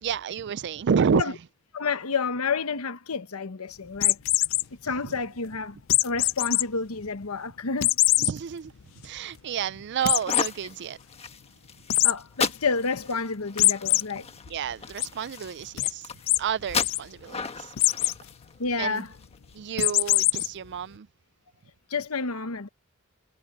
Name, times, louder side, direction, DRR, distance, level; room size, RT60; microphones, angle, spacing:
voice 1, 0.0-1.4 5.0-5.2 8.2-8.7 9.0-11.0 14.5-16.1 16.4-17.7 18.0-18.2 18.8-19.0 19.5-21.1, right 7 dB, 55° right, 0.4 m, -30 dB
voice 2, 1.7-4.2 4.8-5.8 6.0-8.0 12.0-14.3 18.6-19.1 21.9-22.7, left 4 dB, 90° left, 1.1 m, -29 dB
sound 1, 4.0-4.6 5.9-6.6 7.1-7.2 7.8-8.3 8.8-8.9 9.2-9.3 10.1-10.5 11.9-12.1 13.6-14.0 14.5-15.1 15.8-15.9 16.3-16.4 16.7-17.0 17.8-18.2 19.8-20.5, left 17 dB, 65° left, 0.5 m, -22 dB
sound 2, 10.0-19.6, left 5 dB, 30° left, 1.4 m, -35 dB
head